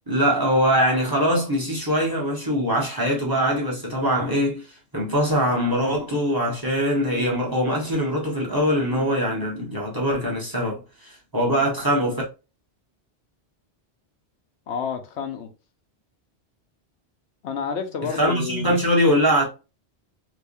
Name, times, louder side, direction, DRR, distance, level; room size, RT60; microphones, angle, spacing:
voice 1, 0.1-12.2 18.1-19.4, equal, 20° right, 1.4 m, -22 dB
voice 2, 14.7-15.5 17.4-18.7, left 6 dB, 80° left, 1.0 m, -29 dB
3.4 x 3.1 x 2.6 m
omnidirectional pair, 1.1 m